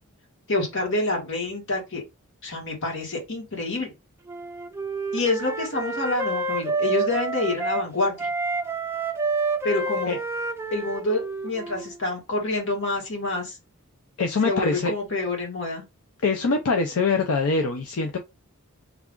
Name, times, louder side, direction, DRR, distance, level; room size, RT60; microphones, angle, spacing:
voice 1, 0.5-2.0 2.4-3.9 5.1-8.3 9.6-10.2 10.7-13.6 14.4-15.8, left 2 dB, 60° left, 1.6 m, -27 dB
Wind instrument woodwind instrument, 4.3-7.8 8.2-11.9, right 3 dB, 10° right, 0.4 m, -29 dB
voice 2, 14.2-14.9 16.2-18.2, left 4 dB, 80° left, 0.5 m, -23 dB
3.4 x 2.4 x 3.6 m
head